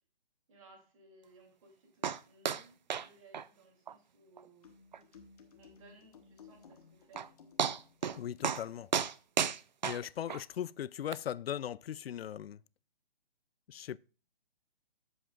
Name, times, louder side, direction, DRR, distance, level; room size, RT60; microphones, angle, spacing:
voice 1, 0.5-7.3, right 2 dB, 35° right, 2.9 m, -61 dB
sound 1, 2.0-2.2 2.4-2.6 2.9-3.1 3.3-3.4 3.9-4.0 4.4-4.5 4.9-5.0 6.7-6.8 7.2-7.3 7.6-8.2 8.4-8.6 8.9-10.4 11.1-11.2, right 7 dB, 50° right, 0.4 m, -33 dB
sound 2, 4.6-8.9, left 5 dB, 40° left, 1.3 m, -58 dB
voice 2, 8.2-8.9 9.8-12.6 13.7-14.0, left 10 dB, 85° left, 0.5 m, -38 dB
12.5 x 7.8 x 2.4 m
hypercardioid pair, 170°, 30 cm